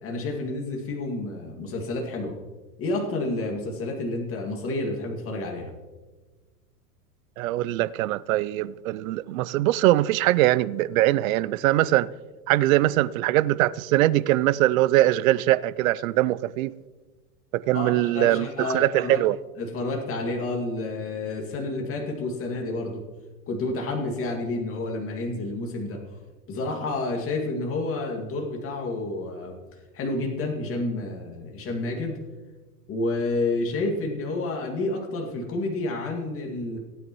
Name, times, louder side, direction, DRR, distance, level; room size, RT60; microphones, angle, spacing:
voice 1, 0.0-2.4 2.8-5.7 17.7-19.2 19.6-23.0 23.5-26.0 26.5-29.5 29.9-32.2 32.9-36.8, left 2 dB, 30° left, 2.2 m, -29 dB
voice 2, 7.4-12.1 12.5-16.7 17.5-19.4, right 15 dB, 60° right, 0.5 m, -22 dB
17.5 x 9.0 x 3.1 m
hypercardioid pair, 115°, 47 cm